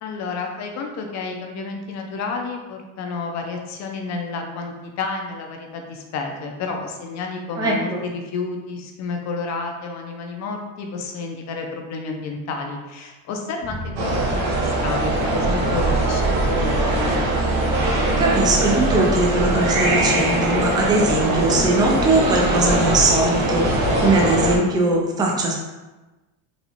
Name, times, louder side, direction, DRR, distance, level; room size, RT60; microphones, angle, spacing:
voice 1, 0.0-17.2, left 4 dB, 40° left, 3 dB, 0.6 m, -31 dB
voice 2, 7.6-8.0 18.2-25.5, right 2 dB, 10° right, -1 dB, 0.3 m, -20 dB
sound 1, 13.6-20.8, right 4 dB, 55° right, 1.4 m, -28 dB
sound 2, 14.0-24.6, right 1 dB, 75° right, 1.1 m, -21 dB
4.0 x 2.4 x 2.9 m, 1.1 s
cardioid pair, 135°, 42 cm